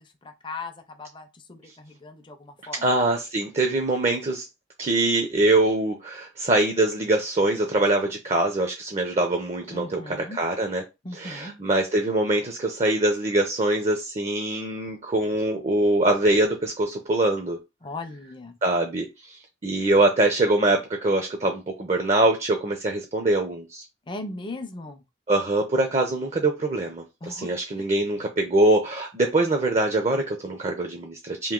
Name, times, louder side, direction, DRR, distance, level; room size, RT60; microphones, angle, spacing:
voice 1, 0.0-2.8 9.7-10.4 11.0-11.5 17.8-18.6 24.1-25.0 27.2-27.5, left 2 dB, 25° left, 0.5 m, -38 dB
voice 2, 2.8-4.5 4.8-10.8 11.1-17.6 18.6-23.8 25.3-31.5, right 2 dB, 35° right, 0.5 m, -23 dB
3.0 x 2.7 x 3.6 m
head